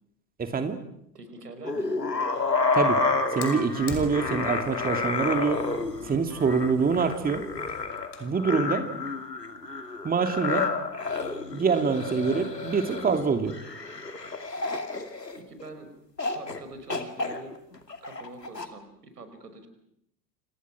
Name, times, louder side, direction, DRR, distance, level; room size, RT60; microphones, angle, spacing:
voice 1, 0.4-0.8 2.7-3.0 3.3-5.6 6.0-7.4 8.2-8.8 10.0-10.6 11.5-13.5, right 5 dB, 20° right, 7 dB, 2.7 m, -25 dB
voice 2, 1.1-2.0 15.4-15.9 16.3-17.5 18.0-19.7, right 2 dB, 75° right, 9 dB, 5.4 m, -44 dB
sound 1, 1.6-15.7 16.2-16.6 16.9-18.7, left 3 dB, 85° left, 2.5 m, -30 dB
Fire, 3.4-8.4, left 6 dB, 35° left, 6.0 m, -44 dB
29.5 x 27.5 x 6.2 m, 0.75 s
figure-of-eight pair, 80°, 47 cm